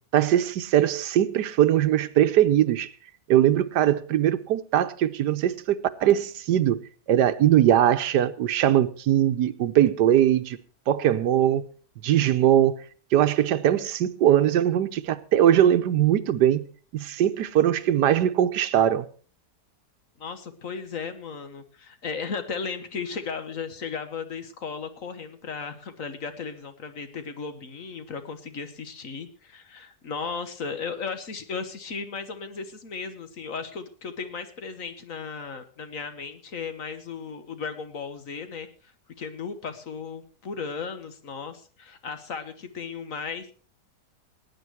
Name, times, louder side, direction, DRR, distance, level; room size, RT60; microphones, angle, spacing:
voice 1, 0.1-2.9 3.3-6.8 7.1-10.6 10.9-11.6 12.0-12.8 13.1-16.7 16.9-19.1, right 11 dB, 85° right, 1.4 m, -21 dB
voice 2, 20.2-38.7 39.2-43.5, left 5 dB, 55° left, 1.6 m, -35 dB
18.0 x 9.3 x 4.6 m
omnidirectional pair, 1.7 m